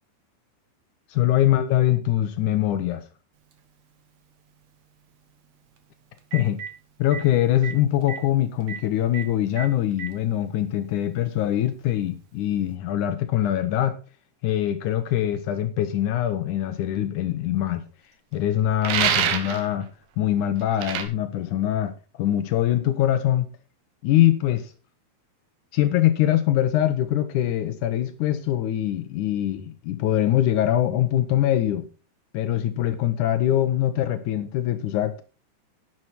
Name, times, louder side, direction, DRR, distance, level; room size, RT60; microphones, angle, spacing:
voice 1, 1.1-3.0 6.3-6.6 7.0-14.0 14.4-17.8 18.3-19.9 20.2-23.5 24.0-24.7 25.7-31.9 32.3-35.2, left 12 dB, 90° left, 1.7 m, -23 dB
Telephone, 3.5-3.6 5.8-5.9 6.2-6.7 7.1-7.2 7.6-7.7 8.0-8.2 8.7-8.8 9.1-9.2 9.6-10.1 11.1-11.2 12.7-12.8, right 7 dB, 60° right, 1.9 m, -34 dB
sound 1, 18.8-19.6 20.8-21.0, right 9 dB, 80° right, 3.5 m, -23 dB
11.0 x 9.3 x 4.3 m
omnidirectional pair, 4.9 m